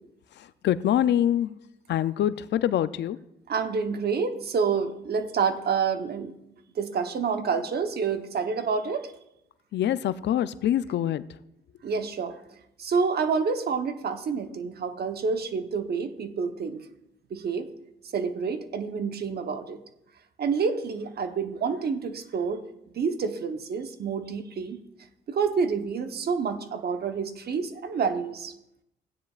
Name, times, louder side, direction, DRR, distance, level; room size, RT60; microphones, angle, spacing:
voice 1, 0.6-1.5 1.9-3.2 9.7-11.2, left 11 dB, 65° left, 15 dB, 0.5 m, -24 dB
voice 2, 3.5-6.3 6.7-9.1 11.8-12.4 12.8-16.9 17.3-17.7 18.1-19.8 20.4-22.7 22.9-24.8 25.3-28.5, right 5 dB, 55° right, 8 dB, 1.0 m, -28 dB
16.0 x 9.4 x 2.4 m, 0.84 s
cardioid pair, 90°, 20 cm